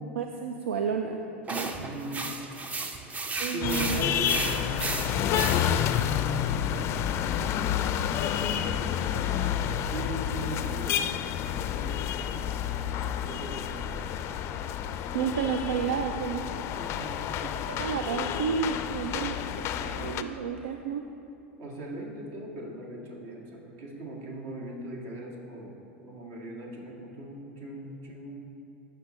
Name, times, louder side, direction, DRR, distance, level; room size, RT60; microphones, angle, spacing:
voice 1, 0.2-1.2 1.5-1.7 3.4-4.0 15.1-16.5 17.7-21.0, right 7 dB, 80° right, 5 dB, 0.4 m, -31 dB
sound 1, 1.5-6.0, right 3 dB, 20° right, 0.6 m, -34 dB
voice 2, 1.8-2.3 3.5-7.9 8.2-9.3 9.9-12.6 13.2-14.2 14.9-15.4 16.8-17.3 21.6-25.8 26.1-28.5, right 1 dB, 55° right, -2 dB, 1.9 m, -40 dB
sound 2, 3.6-20.2, left 9 dB, 40° left, 0.4 m, -29 dB
14.5 x 5.5 x 3.1 m, 2.7 s
hypercardioid pair, 95°, 7 cm